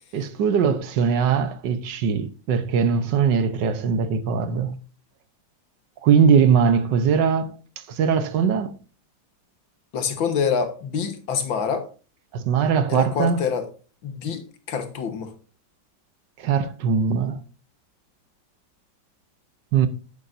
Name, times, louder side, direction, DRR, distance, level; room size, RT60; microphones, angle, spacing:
voice 1, 0.1-4.8 6.0-7.5 7.9-8.7 12.3-13.4 16.4-17.4 19.7-19.9, right 6 dB, 70° right, 1.6 m, -21 dB
voice 2, 9.9-11.9 12.9-13.7 14.0-15.3, left 6 dB, 90° left, 2.2 m, -26 dB
10.5 x 10.5 x 2.7 m
omnidirectional pair, 2.1 m